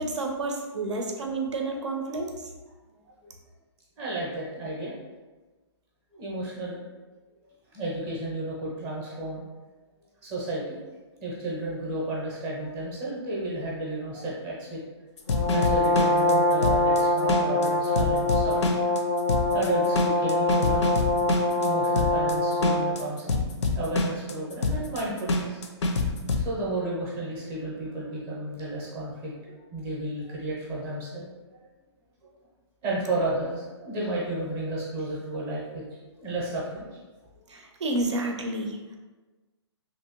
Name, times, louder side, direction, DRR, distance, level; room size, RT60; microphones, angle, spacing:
voice 1, 0.0-2.4 37.5-39.0, right 2 dB, 85° right, 2 dB, 0.6 m, -30 dB
voice 2, 4.0-5.0 6.1-6.8 7.7-9.4 10.2-10.8 11.2-14.8 15.5-18.8 19.5-20.9 21.6-23.5 23.7-25.6 26.3-31.3 32.8-36.9, right 2 dB, 20° right, -5 dB, 0.6 m, -32 dB
sound 1, 15.2-26.5, left 3 dB, 80° left, 0.5 m, -27 dB
Brass instrument, 15.3-23.0, left 2 dB, 20° left, 0.4 m, -24 dB
2.9 x 2.6 x 2.9 m, 1.2 s
hypercardioid pair, 160°, 15 cm